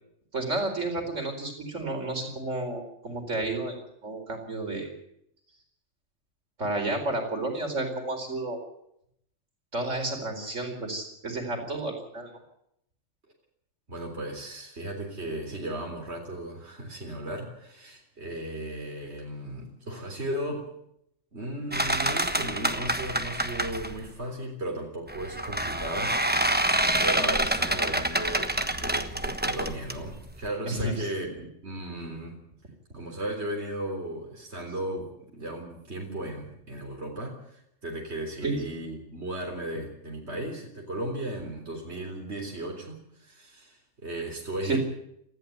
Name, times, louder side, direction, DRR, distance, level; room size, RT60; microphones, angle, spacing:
voice 1, 0.3-3.8 4.0-4.9 6.6-8.6 9.7-12.3 30.6-31.1 38.4-38.6 40.2-40.3 44.6-44.8, right 2 dB, 85° right, 4 dB, 4.8 m, -31 dB
voice 2, 13.9-20.7 21.3-26.2 27.0-31.3 31.6-32.4 32.9-44.8, right 1 dB, 60° right, 1 dB, 4.0 m, -36 dB
sound 1, 21.7-24.1 25.1-30.5, right 1 dB, 10° right, 1.2 m, -27 dB
19.5 x 14.5 x 9.4 m, 0.75 s
omnidirectional pair, 1.3 m